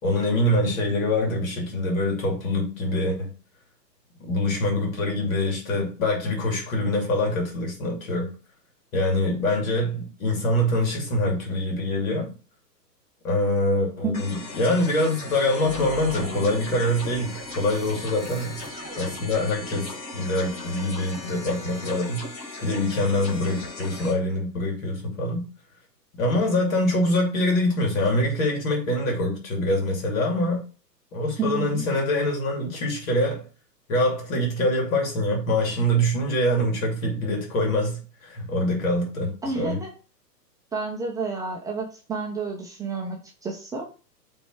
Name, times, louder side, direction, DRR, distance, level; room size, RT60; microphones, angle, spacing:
voice 1, 0.0-3.3 4.2-8.4 8.9-12.3 13.2-18.6 19.0-22.3 22.6-25.5 26.2-30.6 31.1-33.4 33.9-39.8, left 1 dB, 50° left, 2.9 m, -24 dB
sound 1, 14.1-24.1, left 2 dB, 85° left, 1.7 m, -38 dB
sound 2, 15.6-19.7, right 6 dB, 25° right, 1.4 m, -41 dB
voice 2, 31.4-31.8 39.4-39.9 40.7-43.9, right 4 dB, 5° right, 0.6 m, -30 dB
6.8 x 3.6 x 4.8 m
figure-of-eight pair, 115°, 50 cm